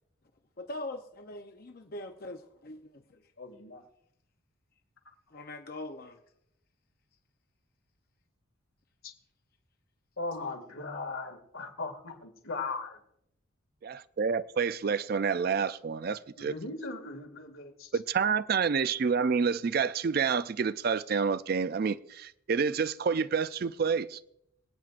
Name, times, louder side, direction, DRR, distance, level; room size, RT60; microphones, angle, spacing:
voice 1, 0.6-3.2 5.3-6.2, left 1 dB, 45° left, 0.7 m, -42 dB
voice 2, 3.4-3.8 9.0-9.1 10.2-13.0 16.4-17.9, left 3 dB, 80° left, 2.1 m, -38 dB
voice 3, 13.8-16.5 17.9-24.2, right 5 dB, 45° right, 0.3 m, -28 dB
25.5 x 9.0 x 2.5 m
head